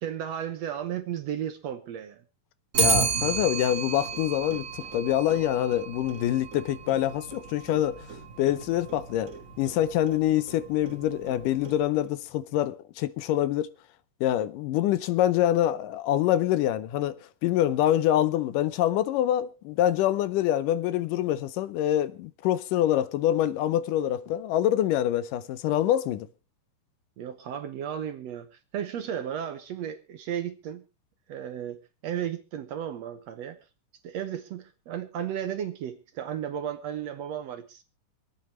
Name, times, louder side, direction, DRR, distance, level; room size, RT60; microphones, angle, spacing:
voice 1, 0.0-2.2 27.2-30.8 31.3-31.8 32.0-33.6 34.0-37.8, right 9 dB, 65° right, 1.8 m, -34 dB
Clock, 2.7-12.1, right 5 dB, 40° right, 1.2 m, -33 dB
voice 2, 2.8-8.0 8.4-9.3 9.6-13.7 14.2-17.2 17.4-26.3, left 12 dB, 80° left, 2.4 m, -25 dB
26.5 x 8.9 x 3.1 m
omnidirectional pair, 3.8 m